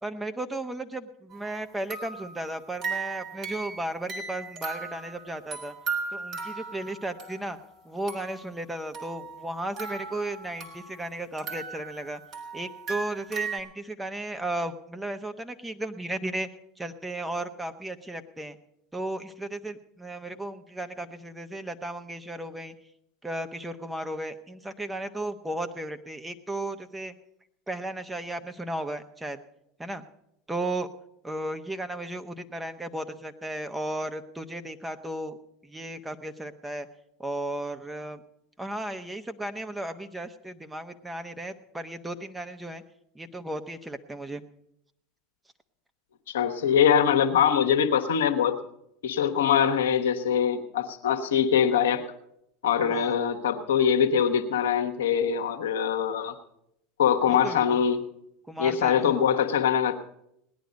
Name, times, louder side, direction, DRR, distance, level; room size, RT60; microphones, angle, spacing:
voice 1, 0.0-5.7 6.1-7.6 7.8-12.2 12.5-16.5 16.8-18.6 18.9-22.7 23.2-27.1 27.7-29.4 29.8-30.0 30.5-30.9 31.2-35.4 35.6-36.9 37.2-38.2 38.6-42.8 43.1-44.4 52.9-53.1 57.3-57.8 58.5-59.3, right 1 dB, 10° right, 8 dB, 1.0 m, -35 dB
sound 1, 1.3-1.5 1.9-7.7 8.1-8.5 8.9-11.0 11.4-13.6, right 4 dB, 50° right, 3.2 m, -37 dB
voice 2, 46.3-48.6 49.0-52.0 52.6-56.3 57.0-58.0 58.6-60.0, left 8 dB, 80° left, 7 dB, 1.0 m, -23 dB
18.0 x 10.5 x 5.2 m, 0.78 s
hypercardioid pair, 85°, 0 cm